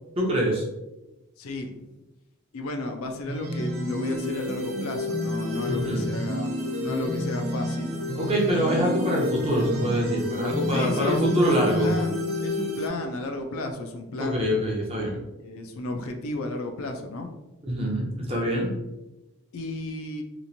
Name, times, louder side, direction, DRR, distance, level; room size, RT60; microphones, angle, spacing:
voice 1, 0.2-0.6 5.7-6.0 8.2-11.9 14.2-15.2 17.6-18.7, equal, 25° right, -2 dB, 0.6 m, -25 dB
voice 2, 1.4-1.9 2.5-6.5 6.8-8.0 10.7-14.6 15.4-17.3 19.5-20.2, left 2 dB, 70° left, 5 dB, 0.4 m, -33 dB
sound 1, 3.3-12.9, left 1 dB, 70° right, 0.6 m, -29 dB
2.9 x 2.4 x 2.6 m, 0.98 s
head